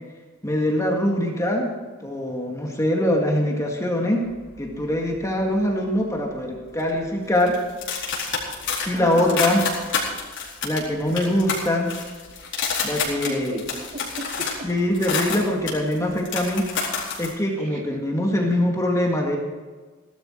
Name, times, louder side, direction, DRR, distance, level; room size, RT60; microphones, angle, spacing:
voice 1, 0.4-1.7 2.0-4.2 4.6-7.5 8.9-9.6 10.6-11.9 12.8-13.5 14.6-16.6 17.2-19.4, left 1 dB, 15° left, 0 dB, 2.1 m, -23 dB
sound 1, 4.2-5.6 5.9-6.3 6.8-17.3, left 5 dB, 60° left, 4.5 m, -29 dB
voice 2, 8.9-9.4 13.2-14.7 17.6-18.1, right 1 dB, 40° right, -1 dB, 3.1 m, -35 dB
17.5 x 12.5 x 4.6 m, 1.4 s
head